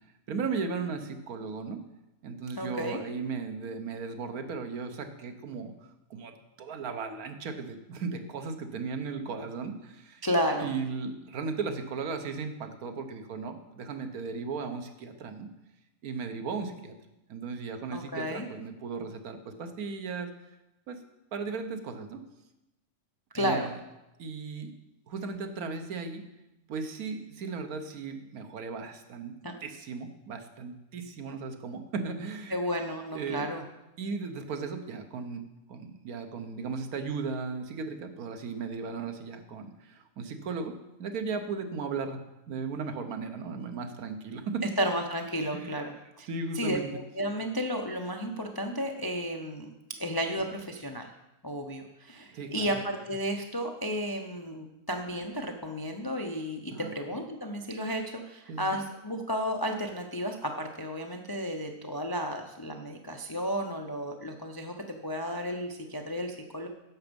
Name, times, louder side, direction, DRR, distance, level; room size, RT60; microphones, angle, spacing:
voice 1, 0.3-1.8 2.2-5.7 6.1-10.2 10.6-15.5 16.0-16.9 17.3-20.3 20.9-21.0 21.3-22.2 23.4-23.7 24.2-24.7 25.1-26.2 26.7-29.3 29.6-32.6 33.1-33.5 34.0-35.4 35.7-40.7 41.0-44.7 45.5-45.7 46.3-46.9 52.3-52.8 56.7-56.9 58.5-58.8, right 4 dB, 80° right, 7 dB, 1.4 m, -36 dB
voice 2, 2.6-3.0 10.2-10.7 17.9-18.5 23.3-23.7 29.3-29.5 32.5-33.6 44.8-46.3 46.5-49.7 50.0-51.1 51.4-66.7, equal, 35° left, 3 dB, 0.3 m, -33 dB
10.5 x 7.0 x 5.2 m, 0.95 s
omnidirectional pair, 1.5 m